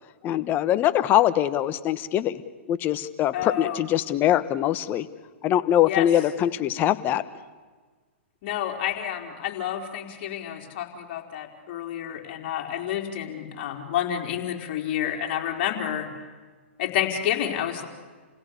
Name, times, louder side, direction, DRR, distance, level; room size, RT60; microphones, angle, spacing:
voice 1, 0.2-2.4 2.7-5.1 5.4-7.2, left 12 dB, 30° left, 12 dB, 1.3 m, -23 dB
voice 2, 3.3-3.8 5.9-6.1 8.4-16.1 16.8-17.9, left 10 dB, 45° left, 2 dB, 4.4 m, -29 dB
29.5 x 16.5 x 8.4 m, 1.4 s
hypercardioid pair, 130°, 7 cm